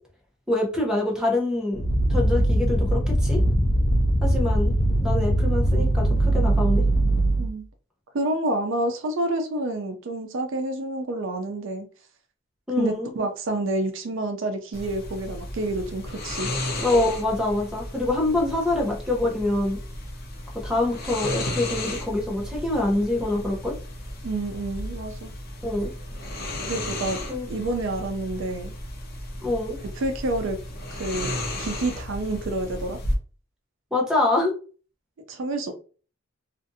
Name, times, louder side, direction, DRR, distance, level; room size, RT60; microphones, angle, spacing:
voice 1, 0.5-1.8 2.1-3.4 4.2-4.7 5.0-6.8 12.7-13.1 16.8-19.8 20.6-23.7 25.6-25.9 27.3-27.5 29.4-29.8 33.9-34.5, left 2 dB, 5° right, -1 dB, 0.7 m, -25 dB
sound 1, 1.7-7.5, right 1 dB, 25° left, 0.3 m, -21 dB
voice 2, 8.1-11.9 12.8-16.5 24.2-25.3 26.7-27.2 27.5-28.7 30.0-30.6 30.9-31.3 31.6-33.0 35.3-35.7, right 2 dB, 65° right, 6 dB, 0.4 m, -28 dB
sound 2, 14.7-33.1, left 1 dB, 50° left, 0.7 m, -34 dB
2.5 x 2.4 x 2.6 m, 0.38 s
head